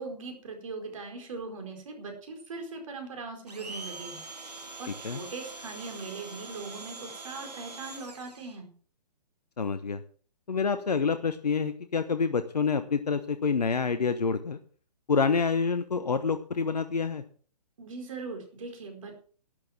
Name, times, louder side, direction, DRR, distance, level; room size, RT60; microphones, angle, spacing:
voice 1, 0.0-4.2 4.8-8.7 17.8-19.2, right 3 dB, 55° right, 4 dB, 4.5 m, -40 dB
Domestic sounds home sounds, 3.5-8.6, right 3 dB, 75° right, 2.5 m, -43 dB
voice 2, 9.6-10.0 10.5-14.6 15.1-17.2, left 5 dB, 75° left, 11 dB, 1.1 m, -27 dB
12.5 x 9.3 x 6.0 m, 0.43 s
figure-of-eight pair, 130°, 21 cm